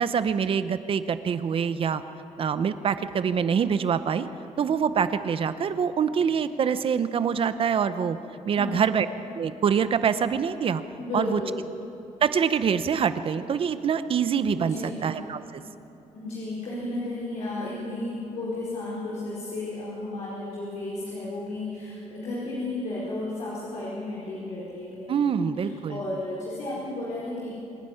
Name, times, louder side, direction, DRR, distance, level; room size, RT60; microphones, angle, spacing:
voice 1, 0.0-2.0 2.4-4.3 4.6-8.2 8.5-9.1 9.3-10.8 11.1-11.4 12.2-15.6 25.1-26.0, right 7 dB, 45° right, 12 dB, 0.8 m, -25 dB
voice 2, 8.4-8.8 11.0-11.5 14.6-15.0 16.1-27.5, left 2 dB, 70° left, -8 dB, 4.9 m, -33 dB
26.0 x 10.0 x 9.9 m, 2.9 s
cardioid pair, 145°, 13 cm